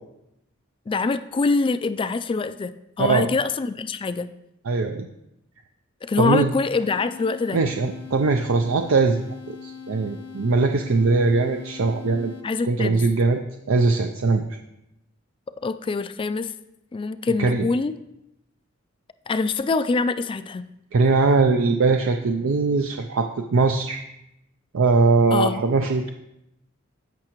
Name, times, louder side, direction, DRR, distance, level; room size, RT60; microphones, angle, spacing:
voice 1, 0.9-4.3 6.0-7.6 12.4-13.0 15.6-16.5 16.9-17.9 19.3-20.7 25.3-25.6, left 4 dB, 25° left, 12 dB, 0.3 m, -24 dB
voice 2, 4.6-5.1 6.2-6.5 7.5-12.3 12.6-13.4 13.7-14.4 17.4-17.7 20.9-24.0 24.7-26.1, right 4 dB, 70° right, 5 dB, 0.5 m, -21 dB
sound 1, 6.7-12.8, left 7 dB, 55° left, 0.8 m, -41 dB
15.0 x 5.8 x 3.0 m, 0.86 s
head